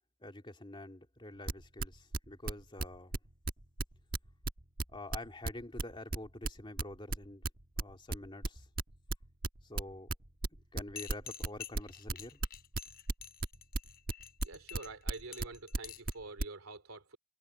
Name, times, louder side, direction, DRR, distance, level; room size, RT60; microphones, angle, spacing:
voice 1, 0.2-3.2 4.9-7.4 7.8-8.7 9.6-10.1 10.7-12.4, left 1 dB, 25° left, 2.9 m, -47 dB
sound 1, 1.5-3.2 3.5-7.5 7.8-11.5 11.7-16.4, right 2 dB, 45° right, 1.4 m, -34 dB
sound 2, 11.0-16.1, left 8 dB, 45° left, 4.7 m, -48 dB
voice 2, 14.4-17.2, right 3 dB, 70° right, 3.6 m, -47 dB
head